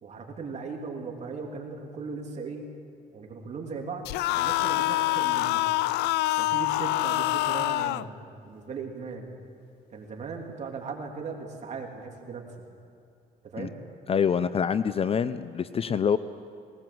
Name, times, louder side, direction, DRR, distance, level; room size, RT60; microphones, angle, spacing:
voice 1, 0.0-2.6 3.1-5.6 6.4-9.3 9.9-12.4 13.4-13.7, right 4 dB, 40° right, 1 dB, 3.2 m, -38 dB
sound 1, 4.1-8.1, left 17 dB, 90° left, 0.4 m, -26 dB
voice 2, 14.1-16.2, left 7 dB, 35° left, 14 dB, 0.6 m, -25 dB
19.5 x 19.0 x 7.8 m, 2.4 s
cardioid pair, 110°, 17 cm